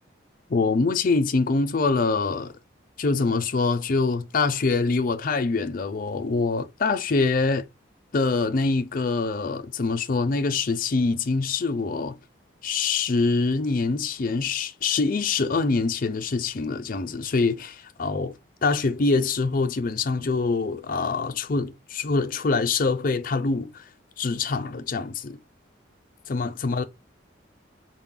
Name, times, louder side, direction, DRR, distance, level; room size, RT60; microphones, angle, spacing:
voice 1, 0.5-2.5 3.0-7.7 8.1-12.2 12.6-23.8 24.2-25.4 26.3-26.8, left 4 dB, 45° left, 0.5 m, -24 dB
4.7 x 2.1 x 3.7 m
head